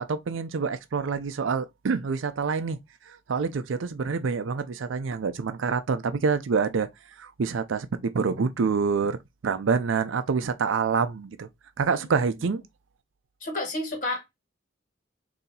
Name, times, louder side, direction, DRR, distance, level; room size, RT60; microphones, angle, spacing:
voice 1, 0.0-2.8 3.1-6.9 7.2-9.2 9.4-11.5 11.8-12.6, right 5 dB, 85° right, 0.5 m, -26 dB
voice 2, 12.0-12.6 13.4-14.2, left 2 dB, 45° left, 1.6 m, -32 dB
4.1 x 2.8 x 3.8 m
head